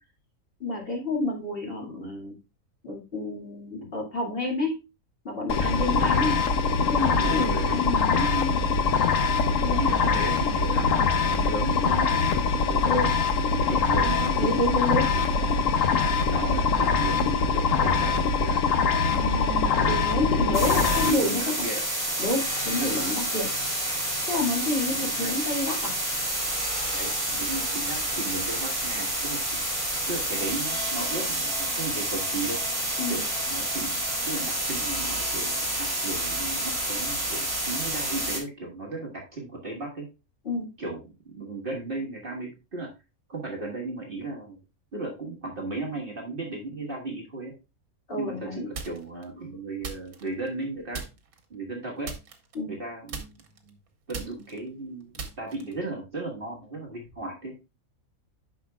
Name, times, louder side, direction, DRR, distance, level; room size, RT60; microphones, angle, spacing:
voice 1, 0.6-2.3 2.8-4.8 5.2-6.4 6.8-8.6 9.6-10.1 12.8-13.1 13.7-14.0 14.4-15.0 15.8-16.1 19.1-21.4 22.2-23.5 24.3-25.9 33.0-33.2 40.4-40.7 48.1-48.7 52.5-52.7, left 2 dB, 40° left, -2 dB, 2.4 m, -29 dB
sound 1, 5.5-21.1, left 5 dB, 65° left, 1.1 m, -23 dB
voice 2, 5.6-6.2 7.0-7.8 9.4-12.3 12.5-13.0 13.5-14.5 15.1-15.6 16.3-18.1 18.4-18.6 19.7-21.9 22.7-23.2 24.9-25.3 26.9-29.6 30.1-32.6 33.1-40.1 40.8-42.9 43.3-44.6 44.9-47.5 48.2-51.0 51.5-52.1 52.7-53.8 54.1-57.5, right 2 dB, 40° right, -1 dB, 1.6 m, -35 dB
sound 2, 20.5-38.4, right 1 dB, 15° right, 3.7 m, -29 dB
sound 3, 48.7-49.2 49.8-50.6 50.9-51.4 52.0-52.8 53.1-55.9, right 5 dB, 75° right, 1.6 m, -39 dB
9.9 x 5.7 x 2.3 m, 0.27 s
omnidirectional pair, 1.5 m